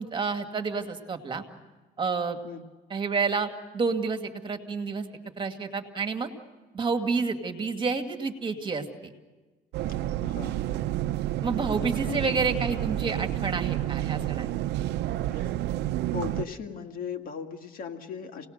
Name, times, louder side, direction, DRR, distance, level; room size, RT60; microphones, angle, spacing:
voice 1, 0.0-1.4 2.0-2.4 2.9-5.1 5.4-6.3 6.7-9.1 11.4-14.5, right 4 dB, 30° right, 5 dB, 2.1 m, -29 dB
sound 1, 9.7-16.5, right 14 dB, 85° right, 0.7 m, -30 dB
voice 2, 10.2-10.6 11.8-12.2 15.3-15.5 16.1-18.5, left 7 dB, 55° left, 4 dB, 2.1 m, -37 dB
28.5 x 19.0 x 6.6 m, 1.3 s
cardioid pair, 110°, 17 cm